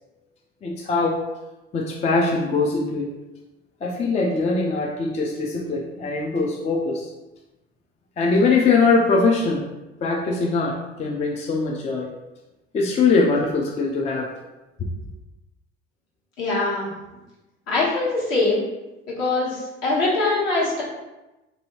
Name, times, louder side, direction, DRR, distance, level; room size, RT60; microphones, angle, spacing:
voice 1, 0.6-1.2 1.7-3.1 3.8-7.1 8.2-9.6 10.0-12.1 12.7-14.3 14.8-14.9, left 3 dB, 20° left, -1 dB, 0.4 m, -22 dB
voice 2, 16.4-16.9 17.7-18.6 19.1-20.8, left 2 dB, 55° left, -6 dB, 1.3 m, -22 dB
2.7 x 2.6 x 3.0 m, 1.0 s
figure-of-eight pair, 60°, 31 cm